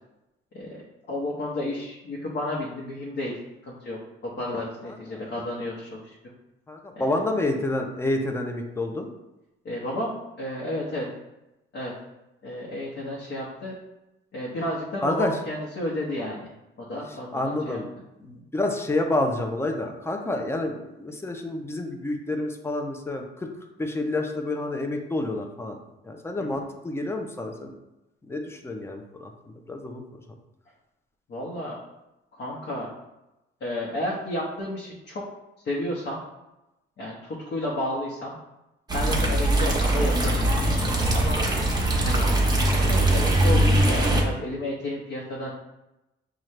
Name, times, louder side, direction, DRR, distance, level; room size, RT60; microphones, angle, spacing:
voice 1, 1.1-3.4 3.6-4.0 4.2-6.1 6.9-7.1 9.6-11.1 11.7-11.9 12.4-13.8 14.3-16.5 16.8-17.8 31.3-31.7 32.3-32.9 33.6-35.2 35.6-36.2 37.0-38.4 38.9-41.4 42.0-42.3 42.8-45.5, left 1 dB, 60° left, -5 dB, 1.0 m, -32 dB
voice 2, 4.9-5.3 6.7-9.1 15.0-15.4 17.3-17.9 18.2-23.5 23.8-25.8 26.0-27.7 28.3-30.2, left 2 dB, 10° left, 4 dB, 0.6 m, -29 dB
sound 1, 38.9-44.2, right 1 dB, 20° right, 1.0 m, -21 dB
5.6 x 2.4 x 3.2 m, 0.95 s
cardioid pair, 90°, 20 cm